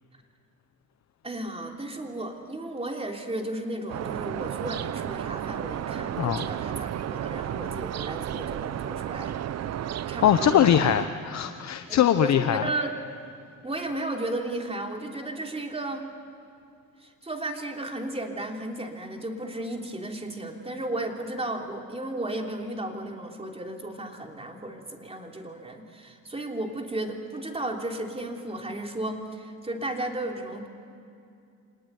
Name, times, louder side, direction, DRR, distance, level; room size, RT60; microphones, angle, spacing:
voice 1, 1.2-9.3 10.1-10.9 11.9-12.9 13.6-16.1 17.0-30.7, right 1 dB, 20° right, 2 dB, 3.3 m, -34 dB
sound 1, 3.9-11.1, right 11 dB, 60° right, 0.8 m, -33 dB
voice 2, 10.2-12.6, left 10 dB, 65° left, 9 dB, 0.9 m, -21 dB
26.0 x 20.0 x 9.4 m, 2.5 s
cardioid pair, 90°, 30 cm